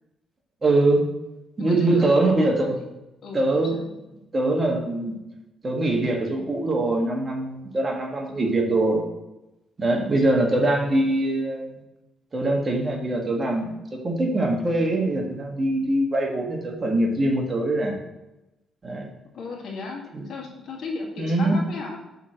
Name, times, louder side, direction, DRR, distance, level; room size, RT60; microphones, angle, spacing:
voice 1, 0.6-1.0 1.6-2.8 3.3-3.8 4.3-5.1 5.6-9.0 9.8-11.8 12.3-18.0 18.8-19.1 20.1-20.3 21.2-21.6, right 2 dB, 30° right, 1 dB, 1.6 m, -23 dB
voice 2, 1.6-2.9 3.2-3.9 19.3-22.0, left 4 dB, 70° left, -1 dB, 1.9 m, -35 dB
5.8 x 4.4 x 6.2 m, 0.97 s
cardioid pair, 90°, 0 cm